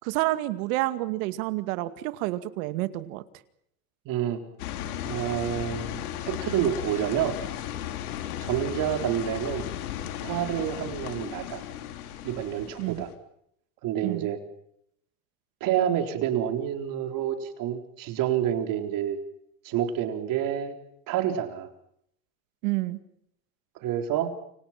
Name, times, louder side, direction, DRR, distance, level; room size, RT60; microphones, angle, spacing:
voice 1, 0.0-3.2 12.8-13.1 14.0-14.3 22.6-23.0, right 18 dB, 70° right, 11 dB, 2.3 m, -29 dB
voice 2, 4.1-4.4 5.0-6.0 6.3-7.4 8.4-9.7 10.2-11.6 12.2-13.1 13.8-14.4 15.6-19.2 19.6-20.7 21.1-21.7 23.8-24.3, right 10 dB, 50° right, 6 dB, 4.1 m, -28 dB
sound 1, 4.6-13.1, left 11 dB, 85° left, 3.6 m, -35 dB
29.0 x 25.5 x 6.0 m, 0.73 s
supercardioid pair, 135°, 43 cm